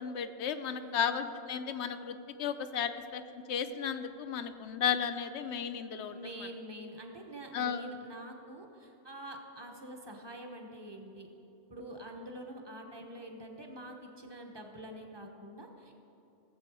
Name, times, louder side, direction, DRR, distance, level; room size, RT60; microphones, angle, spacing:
voice 1, 0.0-6.5 7.5-7.9, left 8 dB, 75° left, 10 dB, 0.9 m, -34 dB
voice 2, 0.8-1.3 6.1-11.3 11.7-15.9, right 1 dB, 25° right, 3 dB, 1.1 m, -46 dB
16.5 x 7.8 x 4.8 m, 2.9 s
omnidirectional pair, 1.2 m